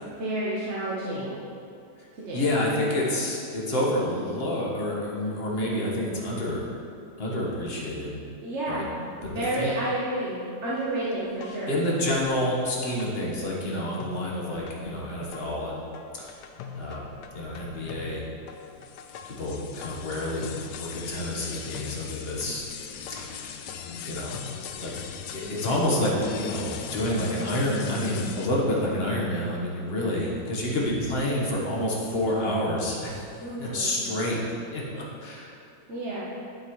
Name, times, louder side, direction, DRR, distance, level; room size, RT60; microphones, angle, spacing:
voice 1, 0.0-1.4 2.2-2.6 8.4-8.9 9.2-11.8 33.4-33.9 35.9-36.2, right 1 dB, 45° right, -8 dB, 1.2 m, -30 dB
voice 2, 2.3-6.7 7.2-8.2 8.7-8.9 9.2-9.7 11.7-15.8 16.2-16.3 16.7-18.2 19.2-22.6 23.2-23.6 24.0-24.3 24.8-24.9 25.3-33.3 33.6-34.4 34.7-35.6, left 1 dB, 35° left, -4 dB, 1.4 m, -28 dB
sound 1, 11.3-13.7 14.0-28.5, left 7 dB, 70° left, 1.0 m, -40 dB
9.5 x 7.4 x 3.1 m, 2.5 s
omnidirectional pair, 2.0 m